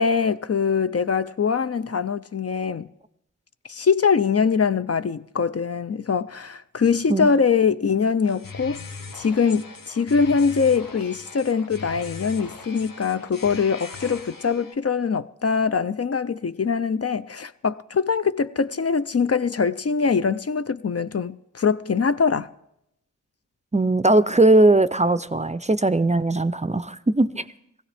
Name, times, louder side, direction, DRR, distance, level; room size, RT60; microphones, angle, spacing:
voice 1, 0.0-2.9 3.7-8.8 9.1-22.5, left 5 dB, 50° left, 0.4 m, -23 dB
sound 1, 8.2-14.8, left 4 dB, 90° left, 0.8 m, -40 dB
voice 2, 23.7-27.4, right 2 dB, 20° right, 0.4 m, -19 dB
19.5 x 15.5 x 3.4 m
wide cardioid pair, 50°, 32 cm